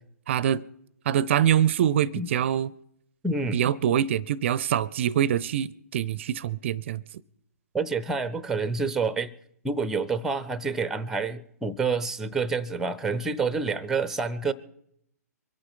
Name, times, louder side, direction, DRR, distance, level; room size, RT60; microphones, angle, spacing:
voice 1, 0.3-0.6 1.1-2.7 3.5-7.0, right 10 dB, 45° right, 0.5 m, -24 dB
voice 2, 3.2-3.6 7.7-9.3 9.6-14.5, right 4 dB, 5° right, 0.6 m, -28 dB
24.0 x 8.8 x 5.6 m
figure-of-eight pair, 130°, 9 cm